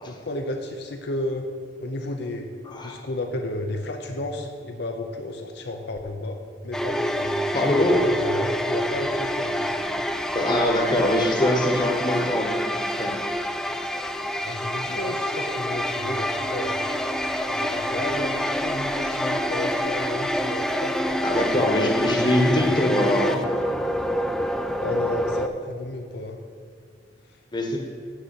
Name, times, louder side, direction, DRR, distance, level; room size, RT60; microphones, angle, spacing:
voice 1, 0.1-1.5 1.8-2.5 2.8-9.7 14.4-16.8 17.5-21.7 22.5-23.0 24.8-26.4 27.3-27.4, left 2 dB, 65° left, 4 dB, 0.7 m, -33 dB
voice 2, 2.6-3.0 7.5-8.0 10.3-13.1 21.2-23.4 27.5-27.8, left 1 dB, 25° left, 1 dB, 1.1 m, -23 dB
sound 1, 6.7-25.5, equal, 5° left, 0.3 m, -27 dB
6.7 x 6.5 x 7.6 m, 2.2 s
head